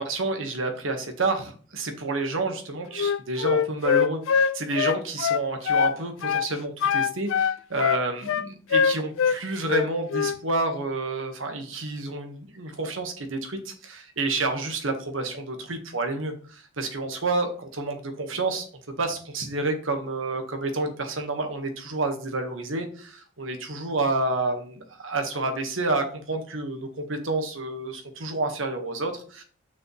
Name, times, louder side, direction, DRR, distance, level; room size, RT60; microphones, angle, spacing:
voice 1, 0.0-18.6 19.0-29.4, right 2 dB, 80° right, 5 dB, 1.4 m, -29 dB
Wind instrument woodwind instrument, 3.0-6.0 6.2-6.5 6.8-9.4 9.7-10.4, left 7 dB, 80° left, 0.4 m, -23 dB
7.1 x 6.1 x 3.1 m, 0.43 s
head